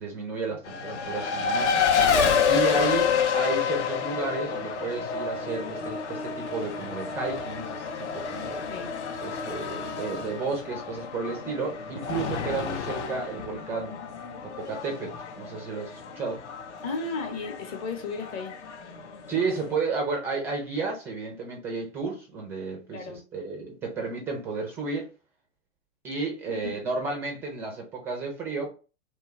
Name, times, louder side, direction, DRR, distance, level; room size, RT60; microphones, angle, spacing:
voice 1, 0.0-1.9 2.5-8.7 9.2-14.0 14.4-16.4 19.3-25.1 26.0-28.7, right 4 dB, 5° right, 0.3 m, -32 dB
Race car auto racing, 0.6-19.8, left 6 dB, 60° left, 0.7 m, -29 dB
voice 2, 16.8-18.6 22.9-23.2 26.5-26.8, left 4 dB, 25° left, 0.7 m, -35 dB
3.1 x 2.3 x 2.8 m
figure-of-eight pair, 110°, 38 cm